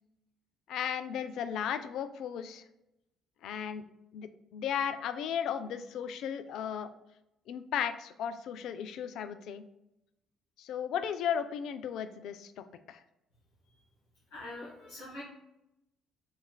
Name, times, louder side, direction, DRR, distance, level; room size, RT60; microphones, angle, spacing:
voice 1, 0.7-2.6 3.4-3.8 4.1-6.9 7.5-9.6 10.6-13.0, left 8 dB, 70° left, 11 dB, 0.3 m, -35 dB
voice 2, 14.3-15.2, left 2 dB, 85° left, -10 dB, 1.2 m, -43 dB
6.9 x 2.4 x 2.2 m, 0.88 s
hypercardioid pair, 55°, 0 cm